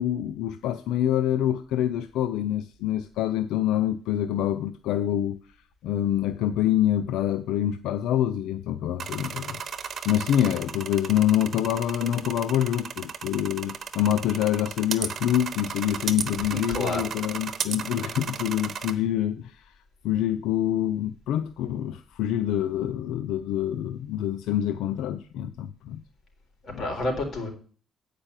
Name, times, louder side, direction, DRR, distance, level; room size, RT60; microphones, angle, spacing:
voice 1, 0.0-5.4 5.8-19.6 20.0-26.0 26.7-26.8, left 11 dB, 90° left, 0.4 m, -26 dB
sound 1, 9.0-18.9, right 7 dB, 55° right, 1.1 m, -35 dB
voice 2, 16.5-17.0 26.6-27.5, left 2 dB, 50° left, 3.9 m, -29 dB
8.8 x 5.1 x 7.3 m
cardioid pair, 90°, 0 cm